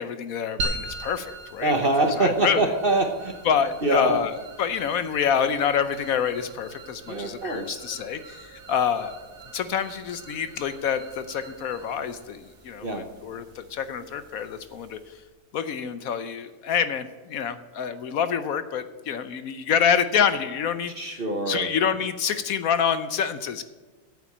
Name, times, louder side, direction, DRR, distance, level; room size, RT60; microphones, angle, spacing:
voice 1, 0.0-1.7 2.0-2.7 3.4-9.2 9.5-15.2 15.5-23.6, left 7 dB, 65° left, 11 dB, 0.9 m, -27 dB
sound 1, 0.6-15.3, right 2 dB, 60° right, 1.7 m, -41 dB
voice 2, 1.6-3.3 3.8-4.2 7.1-7.8 12.8-13.0 21.0-21.7, right 2 dB, 40° right, 5 dB, 0.9 m, -24 dB
9.0 x 8.2 x 8.5 m, 1.3 s
omnidirectional pair, 2.1 m